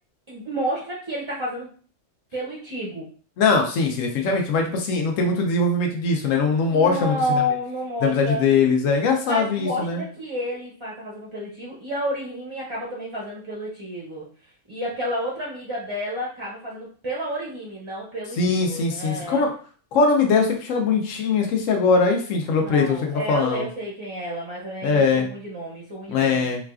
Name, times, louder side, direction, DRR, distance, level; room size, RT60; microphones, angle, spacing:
voice 1, 0.3-1.7 2.3-3.1 6.5-8.5 9.3-19.4 22.6-26.5, equal, 35° right, -4 dB, 0.4 m, -30 dB
voice 2, 3.4-7.1 8.0-10.0 18.4-19.5 19.9-23.6 24.8-25.3 26.1-26.6, left 4 dB, 85° left, 2 dB, 1.0 m, -21 dB
3.9 x 2.3 x 2.3 m, 0.43 s
omnidirectional pair, 1.3 m